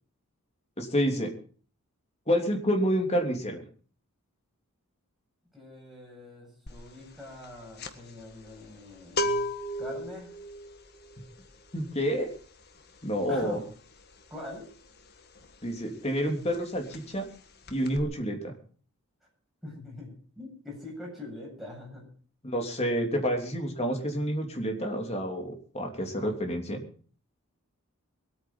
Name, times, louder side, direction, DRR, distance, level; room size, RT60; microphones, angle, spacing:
voice 1, 0.8-1.3 2.3-3.6 11.7-12.3 13.0-13.6 15.6-17.2 17.7-18.5 22.4-26.8, equal, 30° left, 3 dB, 3.1 m, -29 dB
voice 2, 5.5-9.4 9.8-10.3 13.3-13.6 14.3-14.7 19.6-22.1 26.2-26.3, left 1 dB, ahead, -3 dB, 7.9 m, -43 dB
sound 1, 6.7-6.9 7.2-15.8 16.0-16.3 16.5-17.4 17.6-18.0, left 1 dB, 45° left, 1.6 m, -35 dB
23.0 x 9.2 x 5.6 m, 0.43 s
head